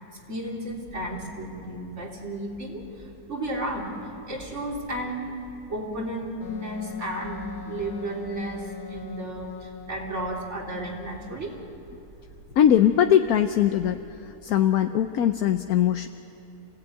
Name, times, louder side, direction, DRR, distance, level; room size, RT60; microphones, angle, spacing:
voice 1, 0.3-3.9 4.3-5.3 5.7-8.6 8.9-11.5, right 1 dB, 45° right, -1 dB, 3.6 m, -33 dB
sound 1, 0.7-14.1, left 1 dB, 70° right, 8.8 m, -50 dB
Wind instrument woodwind instrument, 6.4-11.1, left 8 dB, 50° left, 0.7 m, -42 dB
voice 2, 12.6-14.0 14.4-16.1, left 10 dB, 70° left, 7 dB, 1.2 m, -20 dB
28.0 x 17.5 x 9.2 m, 3.0 s
omnidirectional pair, 1.7 m